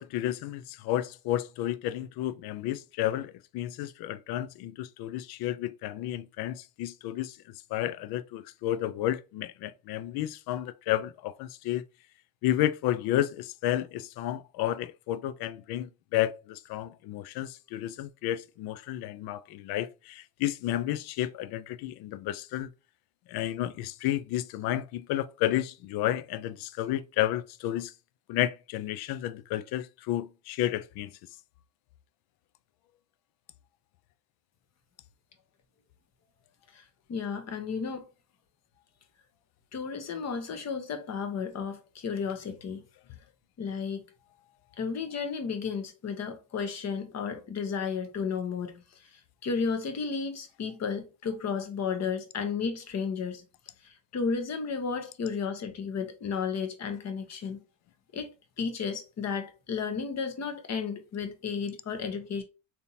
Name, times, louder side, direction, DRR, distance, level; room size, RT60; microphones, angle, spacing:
voice 1, 0.0-7.4 7.7-11.8 12.4-22.7 23.3-27.9 28.3-31.1, left 13 dB, 55° left, 0.5 m, -31 dB
voice 2, 37.1-38.1 39.7-42.8 43.6-44.0 44.8-49.1 49.4-53.4 53.8-57.6 58.1-58.3 58.6-62.4, left 5 dB, 35° left, 0.9 m, -33 dB
3.4 x 2.9 x 2.7 m
supercardioid pair, 80°, 48 cm